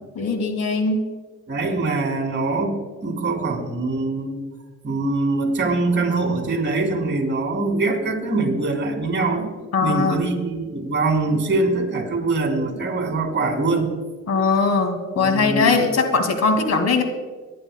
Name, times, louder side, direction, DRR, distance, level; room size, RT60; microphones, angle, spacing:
voice 1, 0.2-1.1 9.7-10.2 14.3-17.0, left 4 dB, 60° left, 6 dB, 2.1 m, -20 dB
voice 2, 1.5-2.8 3.0-4.4 4.8-9.5 9.8-13.9 15.2-15.8, right 3 dB, 40° right, 1 dB, 3.1 m, -23 dB
24.5 x 11.0 x 2.2 m, 1.3 s
cardioid pair, 90°, 30 cm